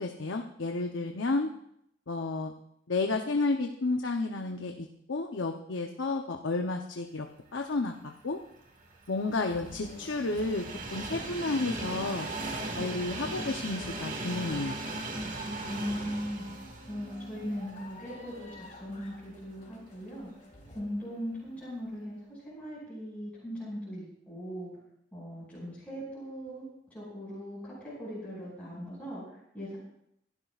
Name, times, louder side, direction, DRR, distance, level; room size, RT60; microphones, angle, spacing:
voice 1, 0.0-1.5 2.1-2.5 2.9-7.3 7.5-8.4 9.1-12.3 12.8-14.8, left 3 dB, 80° left, 3 dB, 0.8 m, -31 dB
Train, 8.5-18.6 19.0-19.1 20.2-20.3, right 2 dB, 45° right, 1.8 m, -38 dB
sound 1, 9.3-20.8, left 1 dB, 40° left, 2.2 m, -50 dB
voice 2, 15.7-20.3 20.7-24.7 25.1-29.8, equal, 10° left, -10 dB, 6.1 m, -39 dB
25.0 x 12.0 x 2.5 m, 0.76 s
head